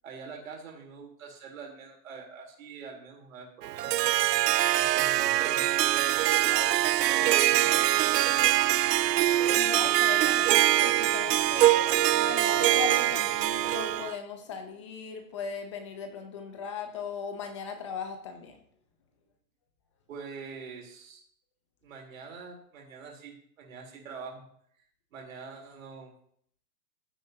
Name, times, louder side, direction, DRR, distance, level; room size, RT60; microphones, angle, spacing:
voice 1, 0.0-3.9 4.7-8.6 20.1-21.2 21.8-24.4 25.1-26.1, right 5 dB, 55° right, 0 dB, 3.6 m, -44 dB
Harp, 3.6-14.1, right 14 dB, 75° right, 0.5 m, -24 dB
voice 2, 9.5-18.6, left 6 dB, 20° left, 6 dB, 0.6 m, -38 dB
14.5 x 7.7 x 2.8 m, 0.65 s
hypercardioid pair, 155°, 49 cm